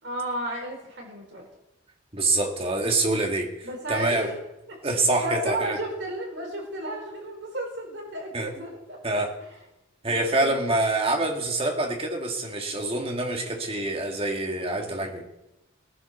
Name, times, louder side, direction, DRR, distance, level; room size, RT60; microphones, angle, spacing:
voice 1, 0.0-1.5 3.6-4.3 4.7-4.8 5.2-9.5 10.0-10.6, right 1 dB, 60° right, 1 dB, 4.9 m, -33 dB
voice 2, 2.1-4.3 4.8-5.8 8.3-8.5 9.0-9.3 10.0-15.3, right 2 dB, 30° right, 3 dB, 2.2 m, -26 dB
18.5 x 9.7 x 6.9 m, 0.94 s
head